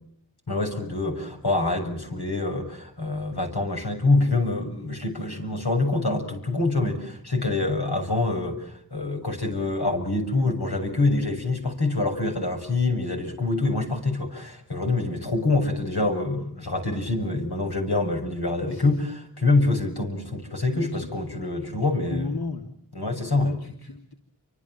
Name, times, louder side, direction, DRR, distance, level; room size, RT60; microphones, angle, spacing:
voice 1, 0.5-19.0 19.4-22.4 22.9-23.5, left 2 dB, 85° left, 3 dB, 7.3 m, -25 dB
voice 2, 18.6-19.0 20.7-21.1 21.6-22.7 23.3-24.1, left 3 dB, 70° left, 2 dB, 3.2 m, -34 dB
30.0 x 25.0 x 7.6 m, 0.68 s
wide cardioid pair, 40°, 38 cm